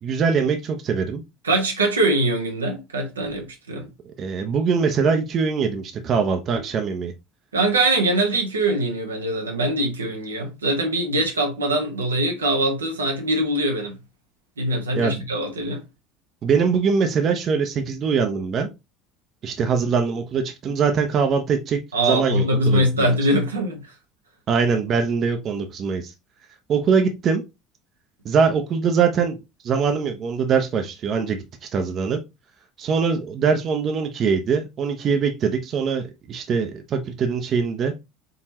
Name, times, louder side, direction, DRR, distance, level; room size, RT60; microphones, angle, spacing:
voice 1, 0.0-1.2 4.0-7.1 15.0-15.2 16.4-18.7 19.4-23.1 24.5-26.1 26.7-27.4 28.2-29.4 29.6-32.2 32.8-37.9, right 5 dB, 45° right, 0.8 m, -22 dB
voice 2, 1.4-3.9 7.5-14.0 14.6-15.8 21.9-23.8, right 1 dB, 85° right, 1.0 m, -22 dB
4.1 x 3.9 x 2.9 m
figure-of-eight pair, 65°, 0 cm